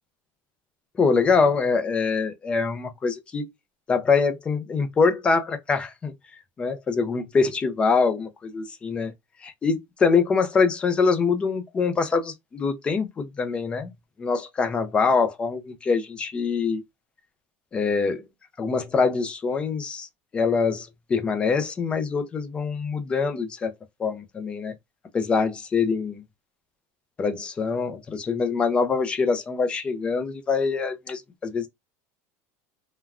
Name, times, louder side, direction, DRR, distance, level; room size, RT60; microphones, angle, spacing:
voice 1, 1.0-3.5 3.9-6.1 6.6-9.1 9.4-13.9 14.2-16.8 17.7-18.2 18.6-20.1 20.3-23.7 24.0-24.7 25.1-26.2 27.2-31.7, left 5 dB, 15° left, 0.4 m, -24 dB
3.4 x 2.2 x 2.3 m
cardioid pair, 175°, 7 cm